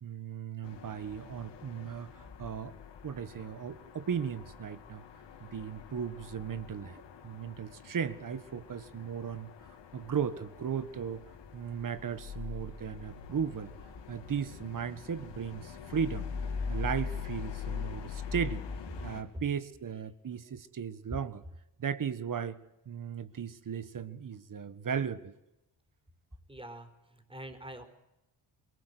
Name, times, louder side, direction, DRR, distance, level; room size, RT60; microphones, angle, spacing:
voice 1, 0.0-2.8 3.0-5.1 5.4-9.5 9.9-11.2 11.5-13.7 14.1-16.3 16.7-18.6 19.0-21.4 21.8-22.6 22.8-25.3, right 7 dB, 45° right, 14 dB, 1.6 m, -36 dB
sound 1, 0.6-19.2, left 5 dB, 75° left, 2.8 m, -42 dB
voice 2, 26.5-27.8, right 1 dB, 10° right, 7 dB, 4.4 m, -46 dB
22.5 x 18.5 x 8.2 m, 0.94 s
supercardioid pair, 60°, 43 cm